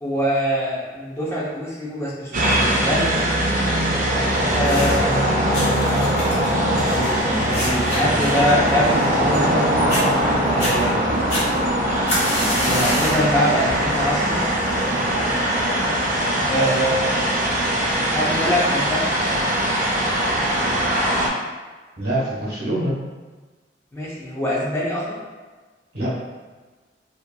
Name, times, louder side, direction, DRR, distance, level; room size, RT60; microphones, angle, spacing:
voice 1, 0.0-3.1 4.5-5.2 6.8-9.8 10.4-11.2 12.6-14.4 16.5-17.3 18.0-19.1 23.9-25.2, equal, 15° left, -7 dB, 0.5 m, -24 dB
sound 1, 2.3-21.3, right 1 dB, 45° right, 0.4 m, -21 dB
sound 2, 4.5-5.1 5.5-9.6 9.9-10.0 10.5-10.7 11.3-13.3 13.7-14.1 14.9-15.0, left 1 dB, 35° left, 1.0 m, -28 dB
voice 2, 4.7-5.1 16.3-16.5 22.0-23.0 25.9-26.1, right 1 dB, 60° right, -7 dB, 1.0 m, -25 dB
2.7 x 2.4 x 2.2 m, 1.3 s
head